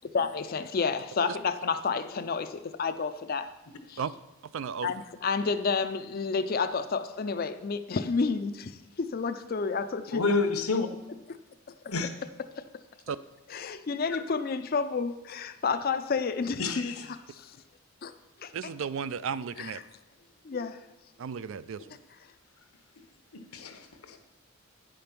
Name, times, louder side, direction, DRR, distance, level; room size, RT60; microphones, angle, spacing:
voice 1, 0.1-3.5 3.9-4.0 4.8-10.4 11.8-12.0 12.6-12.7 13.5-17.6 18.0-18.1 18.4-18.5 19.6-19.7 20.4-20.8, left 5 dB, 40° left, 10 dB, 0.4 m, -30 dB
voice 2, 4.5-4.9 13.1-13.2 18.5-19.8 21.2-22.0, right 6 dB, 60° right, 15 dB, 0.3 m, -34 dB
voice 3, 10.1-10.9 11.9-12.1 16.6-17.1 23.3-24.2, left 4 dB, 80° left, 7 dB, 1.0 m, -29 dB
9.5 x 5.2 x 5.9 m, 0.97 s
head